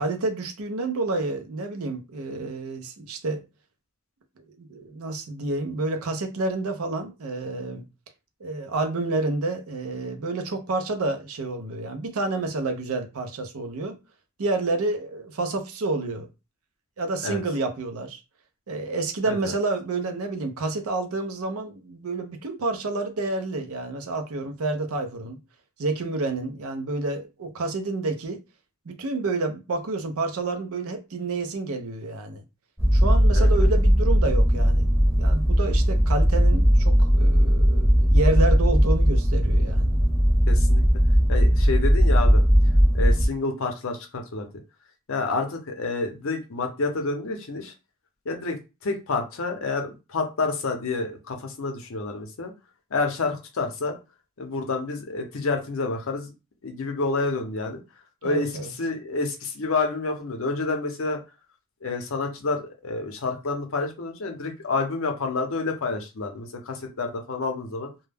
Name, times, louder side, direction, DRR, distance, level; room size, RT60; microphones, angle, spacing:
voice 1, 0.0-3.4 4.4-7.8 8.4-14.0 14.4-16.3 17.0-18.2 18.7-25.4 25.8-28.4 28.9-32.4 32.9-34.9 35.2-39.9 58.2-58.7, right 2 dB, 75° right, 0.5 m, -29 dB
sound 1, 32.8-43.2, equal, 10° right, 0.7 m, -18 dB
voice 2, 40.5-40.8 41.3-42.4 42.9-44.5 45.1-47.7 48.3-52.5 52.9-54.0 54.4-56.3 56.6-57.8 58.2-58.5 58.8-61.2 61.8-67.9, left 3 dB, 65° left, 0.6 m, -28 dB
2.2 x 2.1 x 3.3 m
head